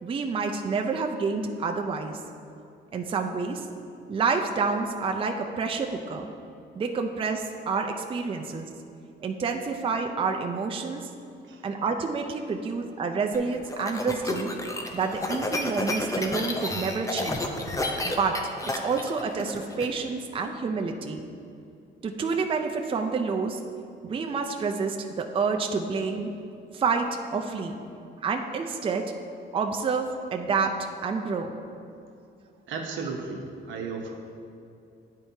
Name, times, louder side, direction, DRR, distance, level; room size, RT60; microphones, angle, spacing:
voice 1, 0.0-2.2 2.9-3.7 4.1-6.3 6.7-8.7 9.2-11.1 11.6-14.5 14.9-17.4 18.0-21.2 22.0-23.6 24.0-26.3 26.7-27.8 28.2-29.1 29.5-31.5, right 4 dB, 25° right, 3 dB, 0.4 m, -28 dB
sound 1, 13.3-19.9, left 2 dB, 15° left, 0.6 m, -30 dB
voice 2, 32.7-34.1, right 4 dB, 75° right, 2 dB, 0.8 m, -34 dB
9.6 x 4.4 x 2.8 m, 2.6 s
cardioid pair, 90°, 20 cm